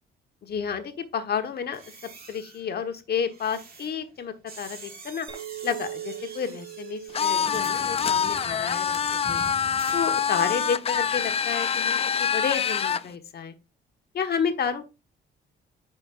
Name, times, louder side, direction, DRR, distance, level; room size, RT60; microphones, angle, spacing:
voice 1, 0.4-1.8 2.3-5.3 5.6-9.0 9.3-9.4 9.9-13.5 14.1-14.9, left 7 dB, 55° left, 7 dB, 1.3 m, -30 dB
sound 1, 1.6-10.7 11.0-11.3, right 3 dB, 50° right, 2.1 m, -46 dB
Chink clink, 5.3-9.8, right 11 dB, 25° right, 2.4 m, -42 dB
sound 2, 7.1-13.1, left 7 dB, 30° left, 0.4 m, -25 dB
9.2 x 5.4 x 2.5 m, 0.27 s
cardioid pair, 90°, 20 cm